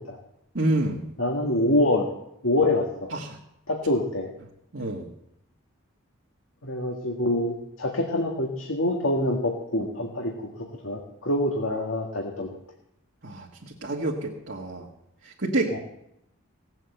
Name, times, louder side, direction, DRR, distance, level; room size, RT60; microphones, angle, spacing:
voice 1, 0.5-1.0 3.1-3.4 4.7-5.1 13.2-14.9 15.2-15.8, right 2 dB, 60° right, -3 dB, 1.6 m, -28 dB
voice 2, 1.2-2.1 2.4-3.1 3.7-4.3 6.6-10.5 10.8-12.5 15.7-15.8, left 1 dB, 75° left, 0 dB, 1.8 m, -25 dB
17.5 x 7.8 x 7.9 m, 0.82 s
head